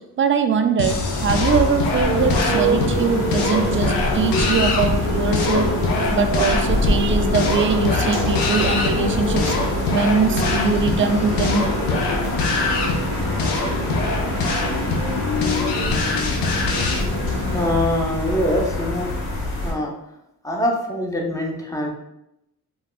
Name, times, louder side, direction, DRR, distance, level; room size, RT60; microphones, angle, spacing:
voice 1, 0.2-5.7 6.1-9.6 9.9-11.7, right 5 dB, 30° right, 7 dB, 0.4 m, -22 dB
sound 1, 0.8-17.0, left 3 dB, 85° left, 0.6 m, -25 dB
sound 2, 0.8-19.7, left 2 dB, 70° left, 1.2 m, -26 dB
Motorcycle, 2.0-17.7, equal, 50° left, 1.0 m, -27 dB
voice 2, 17.5-19.1 19.6-19.9 20.4-21.9, left 1 dB, 10° left, -1 dB, 0.7 m, -23 dB
3.4 x 2.3 x 2.3 m, 0.85 s
supercardioid pair, 55°, 40 cm